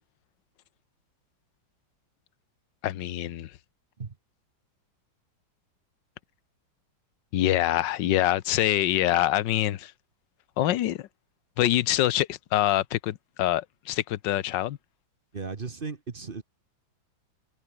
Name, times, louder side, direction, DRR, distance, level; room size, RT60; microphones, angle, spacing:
voice 1, 2.8-3.5 7.3-9.9 10.6-11.1 11.6-14.8, left 13 dB, 75° left, 1.5 m, -25 dB
voice 2, 15.3-16.4, right 4 dB, 30° right, 1.2 m, -36 dB
omnidirectional pair, 2.0 m